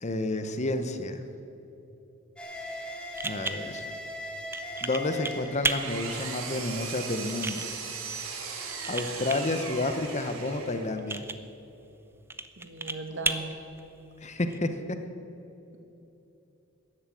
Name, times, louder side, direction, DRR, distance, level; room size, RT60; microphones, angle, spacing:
voice 1, 0.0-1.2 3.2-3.9 4.8-7.7 8.9-11.2 14.2-14.8, left 2 dB, 35° left, 8 dB, 1.0 m, -30 dB
sound 1, 2.4-7.7, equal, 5° left, 1.8 m, -40 dB
sound 2, 2.5-14.6, right 3 dB, 10° right, 0.6 m, -37 dB
Engine, 5.3-11.0, right 5 dB, 80° right, 2.2 m, -38 dB
voice 2, 12.6-13.5, right 2 dB, 65° right, 4 dB, 1.9 m, -37 dB
13.5 x 11.0 x 8.6 m, 3.0 s
head